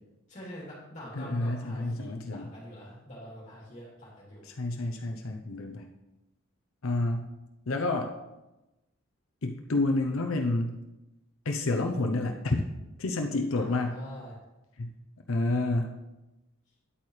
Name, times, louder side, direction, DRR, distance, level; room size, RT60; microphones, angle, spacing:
voice 1, 0.3-4.4 13.5-14.4, equal, 35° left, -6 dB, 3.0 m, -44 dB
voice 2, 1.1-2.5 4.4-5.9 6.8-7.3 7.7-8.1 9.4-10.8 11.4-12.6 13.0-14.0 14.8-14.9 15.3-16.0, left 2 dB, 85° left, 3 dB, 0.8 m, -29 dB
10.5 x 8.6 x 3.3 m, 1.0 s
head